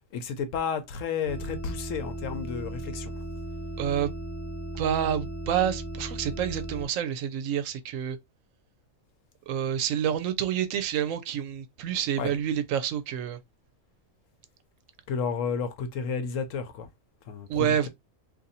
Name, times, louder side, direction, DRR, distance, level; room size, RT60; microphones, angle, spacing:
voice 1, 0.1-3.1 12.2-12.3 15.1-16.9 17.3-17.9, left 6 dB, 75° left, 1.0 m, -32 dB
sound 1, 1.2-6.9, right 1 dB, 20° right, 1.0 m, -36 dB
voice 2, 3.8-4.1 4.8-8.2 9.5-13.4 17.5-17.9, right 9 dB, 75° right, 0.9 m, -28 dB
2.6 x 2.6 x 4.0 m
omnidirectional pair, 1.4 m